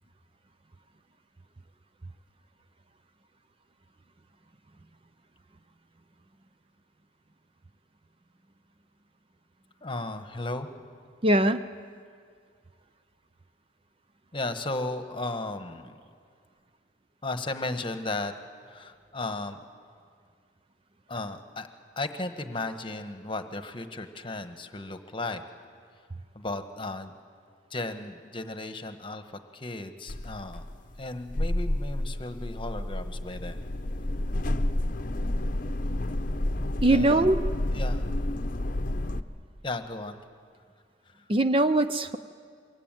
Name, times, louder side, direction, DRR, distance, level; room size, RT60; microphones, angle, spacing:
voice 1, 9.8-10.7 14.3-16.0 17.2-18.3 18.7-19.6 21.1-21.7 22.0-25.4 26.3-27.1 27.7-30.7 31.0-33.6 36.9-37.3 37.7-38.1 39.6-40.2 41.1-41.2, left 2 dB, 25° left, 8 dB, 1.3 m, -35 dB
voice 2, 11.2-11.6 36.8-37.4 41.3-42.2, right 1 dB, 30° right, 10 dB, 0.6 m, -21 dB
sound 1, 30.1-39.2, left 1 dB, 45° left, 0.8 m, -30 dB
23.5 x 23.0 x 9.1 m, 2.1 s
head